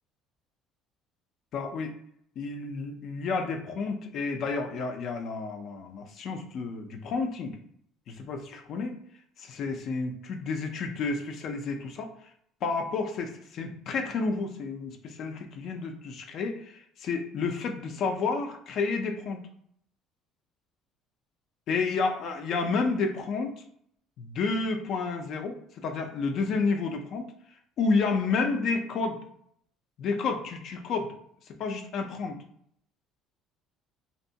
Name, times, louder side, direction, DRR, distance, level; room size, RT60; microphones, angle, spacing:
voice 1, 1.5-1.9 2.4-7.6 8.1-9.0 9.4-12.1 12.6-19.4 21.7-23.5 24.2-27.3 27.8-29.2 30.0-31.1 31.6-32.4, left 4 dB, 50° left, 4 dB, 0.4 m, -30 dB
2.9 x 2.2 x 2.7 m, 0.67 s
cardioid pair, 145°, 0 cm